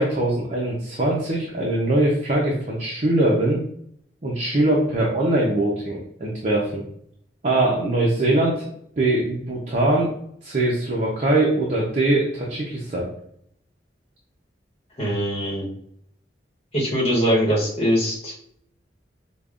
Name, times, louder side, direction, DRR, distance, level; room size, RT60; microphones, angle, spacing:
voice 1, 0.0-3.6 4.2-6.8 7.4-8.7 9.0-10.1 10.4-13.1, right 1 dB, 40° right, -4 dB, 0.7 m, -22 dB
voice 2, 15.0-15.7 16.7-18.5, equal, 35° left, -4 dB, 1.1 m, -22 dB
5.1 x 2.2 x 2.5 m, 0.68 s
head